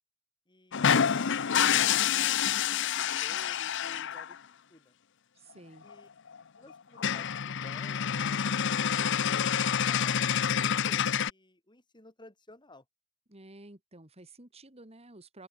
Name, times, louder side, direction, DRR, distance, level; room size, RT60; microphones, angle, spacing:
voice 1, 0.5-1.4 3.0-4.4 4.7-4.9 5.8-6.1 6.6-10.3 10.6-12.8, left 2 dB, 20° left, 5.4 m, -54 dB
sound 1, 0.7-4.4 5.9-6.0 6.3-6.4 6.7-6.8 7.0-11.3, left 8 dB, 60° left, 0.7 m, -27 dB
voice 2, 5.3-5.9 13.3-15.5, right 2 dB, 30° right, 3.1 m, -52 dB
open air
head